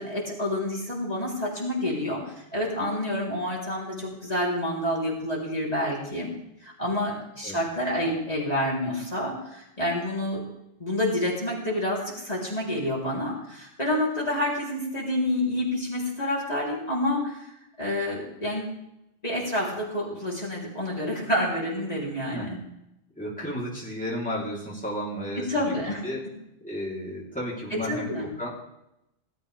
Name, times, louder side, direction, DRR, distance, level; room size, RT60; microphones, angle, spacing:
voice 1, 0.0-2.2 2.5-6.3 6.6-10.4 10.8-17.4 17.8-18.7 19.2-22.6 25.4-26.0 27.7-28.3, left 1 dB, 40° left, -5 dB, 4.0 m, -28 dB
voice 2, 23.2-25.8 26.0-26.2 26.6-28.1 28.4-28.5, equal, 5° left, -6 dB, 3.6 m, -33 dB
18.5 x 13.5 x 3.5 m, 0.83 s
omnidirectional pair, 1.1 m